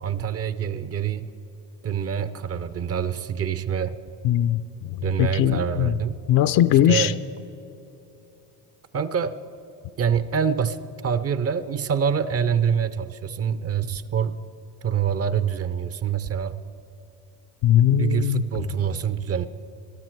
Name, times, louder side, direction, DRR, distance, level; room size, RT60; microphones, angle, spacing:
voice 1, 0.0-1.3 1.8-4.0 5.0-6.2 6.8-7.1 8.9-9.4 10.0-10.8 11.0-14.4 14.8-16.6 17.9-19.5, right 7 dB, 35° right, 14 dB, 0.6 m, -25 dB
voice 2, 4.2-4.6 5.2-5.9 6.3-7.1 17.6-18.4, left 12 dB, 50° left, 14 dB, 0.6 m, -19 dB
22.0 x 12.5 x 4.6 m, 2.9 s
supercardioid pair, 95°, 44 cm